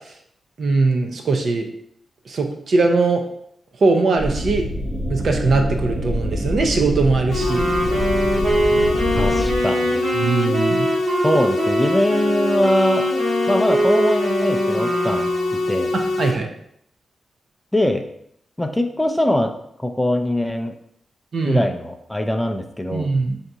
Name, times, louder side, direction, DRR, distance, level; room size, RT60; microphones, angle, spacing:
voice 1, 0.6-1.7 2.3-3.2 3.8-4.6 5.1-7.7 10.2-10.9 16.2-16.5 21.3-21.7 22.9-23.4, right 3 dB, 55° right, 3 dB, 0.6 m, -20 dB
sound 1, 4.2-9.6, equal, 25° right, 1.0 m, -25 dB
sound 2, 7.3-16.3, left 2 dB, 85° left, 0.9 m, -23 dB
Wind instrument woodwind instrument, 7.4-16.0, right 1 dB, 75° right, 1.5 m, -24 dB
voice 2, 9.2-10.1 11.2-13.0 13.5-15.3 15.7-15.9 17.7-18.0 18.6-19.5 19.8-20.7 21.4-23.1, left 1 dB, 5° left, 6 dB, 0.4 m, -22 dB
3.8 x 2.8 x 4.6 m, 0.71 s
wide cardioid pair, 120°, 0 cm